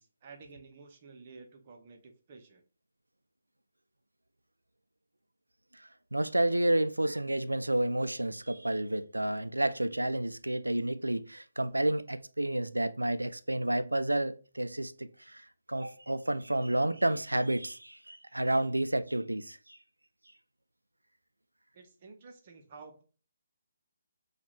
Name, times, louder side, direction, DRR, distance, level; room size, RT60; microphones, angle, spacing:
voice 1, 0.0-2.6 21.7-23.0, right 4 dB, 35° right, 0.8 m, -52 dB
voice 2, 5.7-19.8, right 1 dB, 85° right, 0.3 m, -30 dB
5.9 x 2.4 x 3.0 m
figure-of-eight pair, 140°, 0 cm